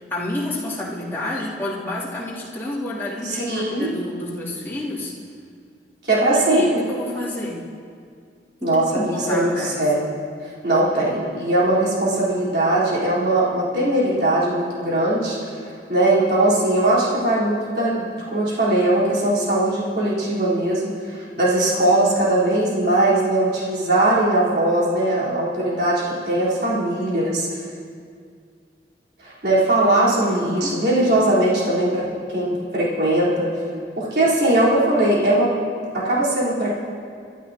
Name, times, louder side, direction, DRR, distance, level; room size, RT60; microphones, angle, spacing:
voice 1, 0.1-5.1 6.3-7.6 8.6-9.8 10.9-11.0 30.2-30.7, left 1 dB, 15° left, -9 dB, 3.1 m, -29 dB
voice 2, 3.2-3.9 6.0-6.8 8.6-10.1 10.6-15.4 15.9-27.6 29.2-33.5 34.0-35.5 35.9-36.7, right 1 dB, 60° right, -8 dB, 4.2 m, -20 dB
29.0 x 12.0 x 3.0 m, 2.2 s
head